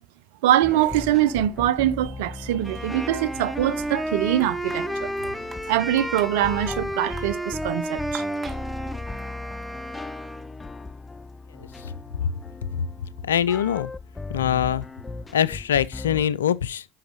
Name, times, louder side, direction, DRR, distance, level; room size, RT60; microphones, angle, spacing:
voice 1, 0.4-5.1 5.7-8.2, right 13 dB, 75° right, 0.6 m, -23 dB
sound 1, 0.6-16.3, left 3 dB, 20° left, 0.6 m, -38 dB
Wind instrument woodwind instrument, 2.6-10.5, right 1 dB, ahead, 1.3 m, -32 dB
sound 2, 4.3-10.1, right 4 dB, 35° right, 2.8 m, -47 dB
voice 2, 11.6-12.3 13.2-13.9 14.3-14.9 15.3-16.9, left 9 dB, 85° left, 0.4 m, -24 dB
10.5 x 6.2 x 3.1 m
hypercardioid pair, 65°, 0 cm